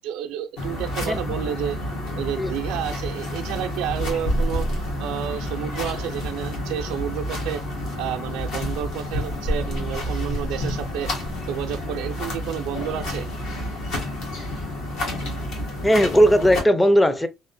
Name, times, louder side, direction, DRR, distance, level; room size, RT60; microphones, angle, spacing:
voice 1, 0.0-1.8 2.2-4.7 5.0-7.6 8.0-11.1 11.5-13.3, right 10 dB, 85° right, 0.4 m, -30 dB
sound 1, 0.6-16.6, left 1 dB, 75° left, 1.2 m, -29 dB
voice 2, 15.8-17.3, equal, 10° left, 0.4 m, -17 dB
2.9 x 2.1 x 2.5 m
cardioid pair, 105°, 0 cm